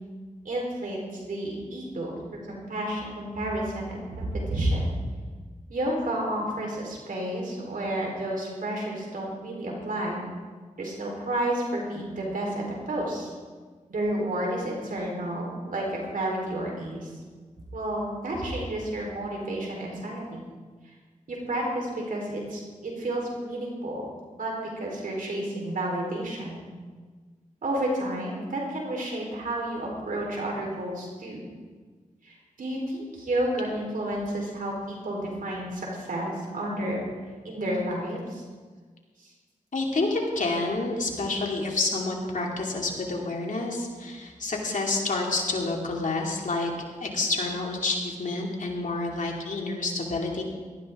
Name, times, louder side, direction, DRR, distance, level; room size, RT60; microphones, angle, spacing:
voice 1, 0.4-1.0 1.3-2.2 2.5-4.9 5.7-10.3 10.8-13.3 13.9-17.1 17.7-20.4 21.3-24.0 24.4-26.6 27.6-31.4 32.2-37.0 37.4-38.4 39.2-39.3, right 1 dB, 85° right, -1 dB, 4.1 m, -31 dB
voice 2, 39.7-46.7 47.0-50.4, left 3 dB, 70° left, -1 dB, 2.7 m, -28 dB
18.0 x 13.5 x 3.8 m, 1.5 s
cardioid pair, 55°, 14 cm